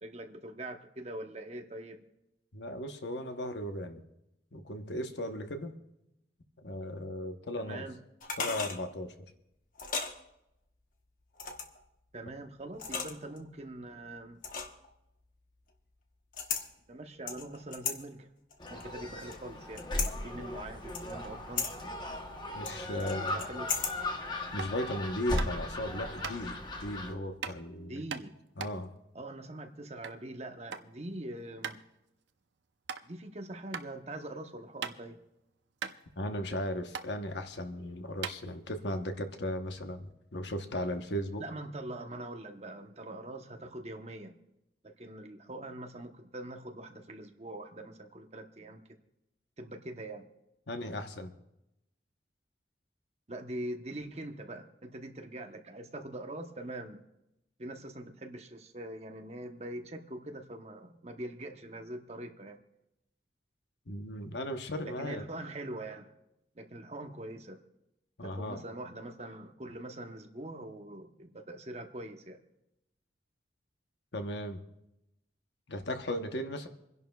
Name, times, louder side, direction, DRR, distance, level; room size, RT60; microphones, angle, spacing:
voice 1, 0.0-2.0 7.6-8.0 12.1-14.4 16.9-18.3 18.7-19.9 20.2-21.8 23.0-23.9 27.9-28.3 29.1-31.8 33.0-35.2 41.4-44.3 44.8-48.8 49.6-50.3 53.3-57.0 57.6-62.6 64.8-66.1 66.6-67.6 68.2-72.4, right 1 dB, 35° right, 5 dB, 0.9 m, -43 dB
voice 2, 2.5-4.0 4.5-5.7 6.6-7.8 8.4-9.1 22.5-23.4 24.5-28.0 28.6-28.9 36.2-41.4 50.7-51.3 63.9-65.2 68.2-68.6 74.1-74.6 75.7-76.7, left 1 dB, 70° left, 6 dB, 1.0 m, -36 dB
sound 1, 8.2-8.8 9.8-10.1 11.4-11.8 12.7-13.4 14.4-14.9 16.3-16.7 17.3-18.0 18.5-19.4 19.8-20.1 20.9-21.3 21.6-21.7 22.7-24.0 24.3-24.4, left 6 dB, 45° left, 1.1 m, -35 dB
Gull seagull, 18.6-27.1, left 1 dB, 25° left, 1.0 m, -37 dB
sound 2, 24.6-24.8 25.4-25.7 26.2-26.4 27.4-27.6 28.1-30.2 30.5-30.9 31.2-31.3 31.6-31.8 32.3-32.4 32.8-33.0 33.7-33.8 34.3-35.2 35.5-35.6 35.8-36.6 36.9-37.1 37.7-37.8 38.2-38.9, right 6 dB, 75° right, 0.6 m, -39 dB
27.5 x 11.0 x 2.3 m, 0.88 s
head